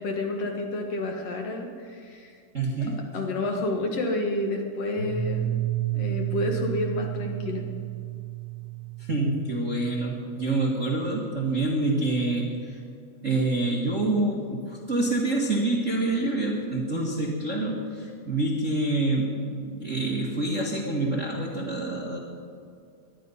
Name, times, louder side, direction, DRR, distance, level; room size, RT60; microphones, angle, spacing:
voice 1, 0.0-2.3 2.7-2.9 3.1-5.6 5.9-7.7, left 2 dB, 60° left, 2 dB, 2.1 m, -29 dB
voice 2, 2.5-3.0 9.1-12.8 13.2-22.2, right 2 dB, 35° right, -3 dB, 1.4 m, -27 dB
Piano, 5.0-10.6, right 13 dB, 10° left, 3.8 m, -32 dB
19.0 x 12.0 x 5.5 m, 2.3 s
omnidirectional pair, 3.6 m